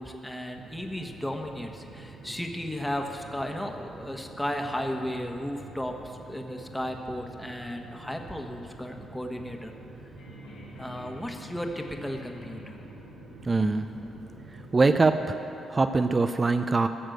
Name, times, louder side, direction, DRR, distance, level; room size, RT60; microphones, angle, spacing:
voice 1, 0.0-9.8 10.8-12.6, equal, 5° left, 3 dB, 1.2 m, -34 dB
sound 1, 0.5-15.1, right 2 dB, 85° right, 2.3 m, -47 dB
sound 2, 10.2-15.1, left 1 dB, 85° left, 2.6 m, -50 dB
voice 2, 13.5-13.8 14.7-15.4 15.7-16.9, right 3 dB, 35° right, 9 dB, 0.5 m, -23 dB
14.0 x 6.5 x 7.8 m, 2.8 s
supercardioid pair, 55°, 0 cm